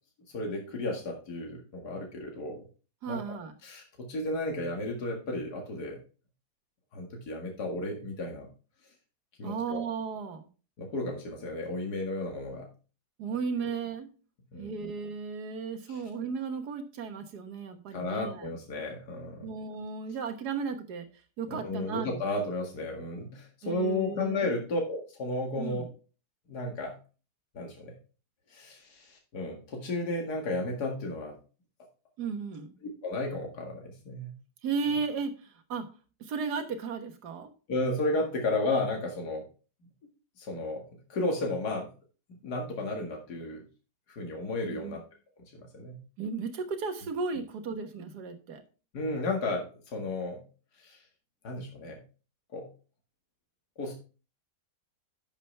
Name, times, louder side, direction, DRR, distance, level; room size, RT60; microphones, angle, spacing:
voice 1, 0.3-2.7 3.1-6.0 6.9-8.5 9.4-9.8 10.8-12.7 14.5-14.8 15.9-16.0 17.9-19.5 21.5-25.8 26.5-27.0 27.5-27.9 28.5-31.4 33.0-34.3 37.7-39.4 40.4-40.8 41.1-41.9 42.4-43.6 44.1-45.0 45.5-46.0 48.9-50.4 50.8-51.0 51.4-52.0 52.5-52.7 53.8-53.9, left 2 dB, 65° left, 1 dB, 2.5 m, -33 dB
voice 2, 3.0-3.5 9.4-10.5 13.2-14.1 14.6-18.5 19.4-21.1 21.4-22.2 23.6-24.5 25.6-25.9 32.2-32.7 34.6-35.9 36.2-37.5 44.6-45.0 46.2-48.6, right 5 dB, 65° right, 6 dB, 1.8 m, -35 dB
11.0 x 7.0 x 3.3 m, 0.35 s
omnidirectional pair, 1.9 m